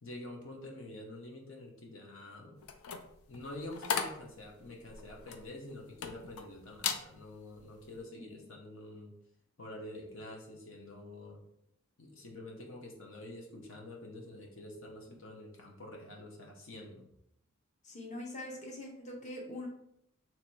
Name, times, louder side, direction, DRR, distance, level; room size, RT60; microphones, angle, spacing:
voice 1, 0.0-2.6 3.3-9.1 9.6-11.4 12.0-17.1, left 1 dB, 65° left, 0 dB, 0.8 m, -47 dB
sound 1, 2.6-6.4 6.8-7.1 7.6-7.8, left 6 dB, 85° left, 0.4 m, -37 dB
voice 2, 17.8-19.7, left 1 dB, 35° left, -1 dB, 0.8 m, -43 dB
3.1 x 2.8 x 4.5 m, 0.75 s
head